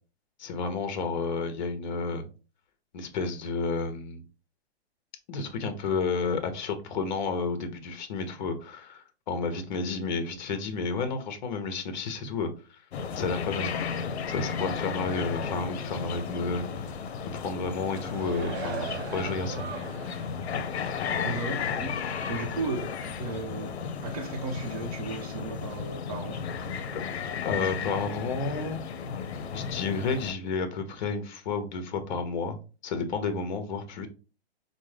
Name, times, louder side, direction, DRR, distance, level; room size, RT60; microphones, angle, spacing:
voice 1, 0.4-2.2 2.9-4.2 5.3-12.8 13.2-13.7 14.3-16.9 17.3-19.7 26.9-27.0 27.4-28.8 29.5-32.6 32.8-34.1, left 4 dB, 45° left, 0.9 m, -31 dB
sound 1, 12.9-30.3, left 6 dB, 80° left, 0.7 m, -34 dB
sound 2, 17.6-20.3 20.8-20.9, right 5 dB, 80° right, 0.8 m, -39 dB
voice 2, 21.2-23.8 24.0-26.4, right 3 dB, 35° right, 0.8 m, -35 dB
5.1 x 2.1 x 3.2 m
hypercardioid pair, 160°, 32 cm